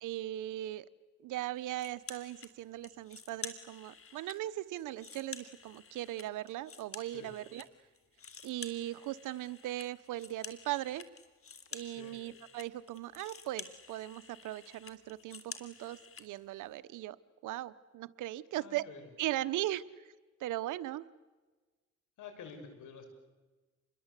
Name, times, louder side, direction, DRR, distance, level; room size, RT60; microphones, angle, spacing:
voice 1, 0.0-0.8 1.2-7.7 8.4-11.0 11.7-17.2 17.4-18.8 19.2-19.8 20.4-21.0, right 14 dB, 85° right, 13 dB, 1.1 m, -38 dB
sound 1, 1.8-2.5 2.8-4.4 4.8-7.7 7.9-16.3, left 6 dB, 45° left, 3.3 m, -49 dB
voice 2, 18.5-19.1 22.2-23.1, left 6 dB, 80° left, 7 dB, 6.4 m, -49 dB
29.0 x 22.5 x 8.3 m, 1.2 s
cardioid pair, 90°, 30 cm